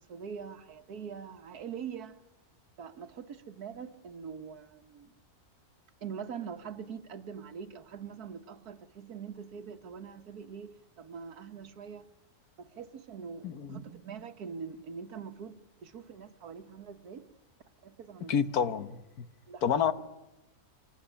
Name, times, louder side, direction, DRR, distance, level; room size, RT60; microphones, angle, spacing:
voice 1, 0.0-2.2 2.8-5.1 6.0-12.1 12.6-17.3 17.8-18.8 19.5-19.6, right 6 dB, 80° right, 1.8 m, -43 dB
voice 2, 13.4-13.8 18.3-19.3 19.6-19.9, left 7 dB, 80° left, 1.6 m, -29 dB
24.5 x 19.5 x 10.0 m
omnidirectional pair, 1.6 m